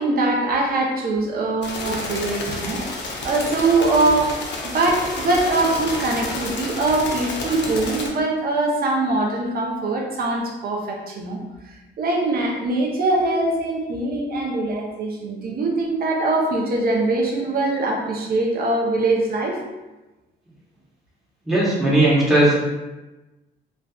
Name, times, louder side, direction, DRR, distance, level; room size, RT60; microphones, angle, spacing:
voice 1, 0.0-3.0 3.2-4.3 4.6-19.6, right 2 dB, 50° right, -1 dB, 0.6 m, -22 dB
sound 1, 1.6-8.1, left 2 dB, 65° left, 0.5 m, -30 dB
voice 2, 21.5-22.5, right 1 dB, ahead, -8 dB, 0.9 m, -17 dB
2.5 x 2.2 x 2.3 m, 1.1 s
cardioid pair, 90°, 20 cm